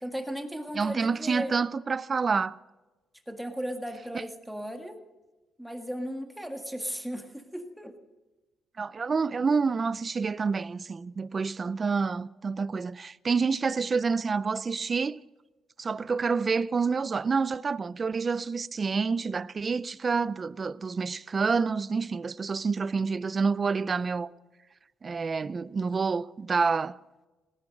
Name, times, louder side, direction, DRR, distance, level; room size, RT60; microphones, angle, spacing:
voice 1, 0.0-1.5 3.3-5.0 5.6-8.0 24.0-24.1, equal, ahead, 1.8 m, -36 dB
voice 2, 0.7-2.6 8.8-15.2 15.8-24.3 25.0-27.0, right 5 dB, 35° right, 0.5 m, -28 dB
18.0 x 10.5 x 6.6 m
cardioid pair, 90°, 0 cm